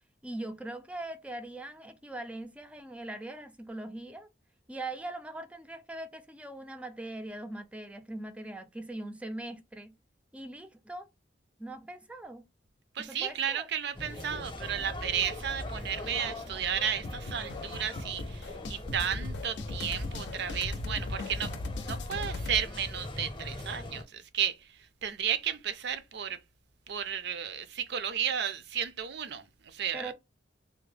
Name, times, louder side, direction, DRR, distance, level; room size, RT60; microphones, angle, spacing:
voice 1, 0.2-4.3 4.7-9.9 10.3-11.1 11.6-12.4 13.0-13.7 29.9-30.1, right 2 dB, 5° right, 0.4 m, -41 dB
voice 2, 12.9-21.5 21.8-26.4 26.9-30.1, right 8 dB, 65° right, 0.5 m, -33 dB
sound 1, 13.9-24.0, left 1 dB, 30° left, 0.7 m, -41 dB
sound 2, 17.0-22.6, left 2 dB, 75° left, 0.5 m, -38 dB
3.4 x 2.1 x 3.2 m
head